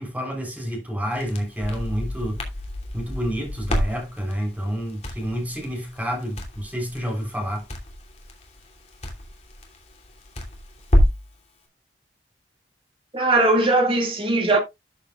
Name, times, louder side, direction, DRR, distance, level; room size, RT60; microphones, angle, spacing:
voice 1, 0.0-2.4 2.9-7.6, equal, 10° right, 3.8 m, -29 dB
Crackle, 1.1-11.3, equal, 35° left, 3.0 m, -28 dB
voice 2, 13.1-14.6, right 2 dB, 30° right, 2.1 m, -19 dB
13.0 x 7.1 x 2.4 m
head